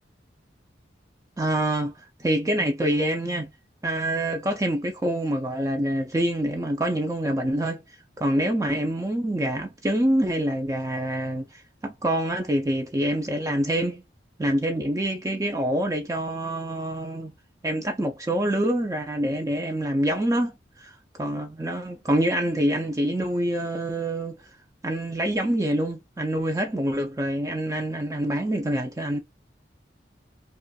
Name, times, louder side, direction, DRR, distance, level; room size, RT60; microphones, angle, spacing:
voice 1, 1.4-3.5 3.8-14.0 14.4-17.3 17.6-24.6 24.8-29.2, right 1 dB, 15° right, 0.4 m, -26 dB
5.3 x 2.3 x 2.3 m
head